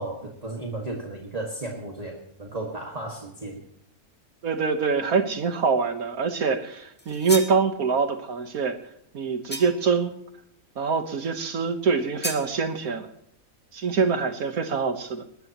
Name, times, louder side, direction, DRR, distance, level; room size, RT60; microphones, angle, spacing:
voice 1, 0.0-3.6, right 2 dB, 25° right, 0 dB, 2.0 m, -34 dB
voice 2, 4.4-8.8 9.1-10.1 10.8-13.1 13.7-15.2, right 5 dB, 85° right, 7 dB, 1.7 m, -25 dB
sound 1, 7.0-7.6 9.5-10.0 12.2-12.5, equal, 5° left, 1.6 m, -33 dB
21.0 x 19.0 x 3.0 m, 0.68 s
omnidirectional pair, 1.5 m